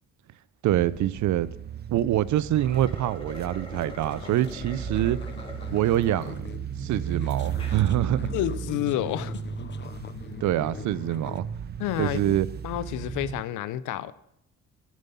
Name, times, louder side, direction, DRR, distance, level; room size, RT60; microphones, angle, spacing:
voice 1, 0.6-1.5 1.9-5.2 5.7-8.3 10.4-11.5 12.0-12.5, right 13 dB, 70° right, 0.6 m, -25 dB
sound 1, 0.7-13.4, right 8 dB, 35° right, 0.6 m, -36 dB
sound 2, 2.4-6.3 6.9-7.0 7.4-7.8, left 1 dB, 15° left, 2.6 m, -44 dB
sound 3, 3.7-11.4, left 6 dB, 35° left, 0.8 m, -42 dB
voice 2, 8.3-9.4 11.8-12.4 12.6-14.1, left 13 dB, 90° left, 0.6 m, -29 dB
9.7 x 9.2 x 5.6 m
cardioid pair, 90°, 30 cm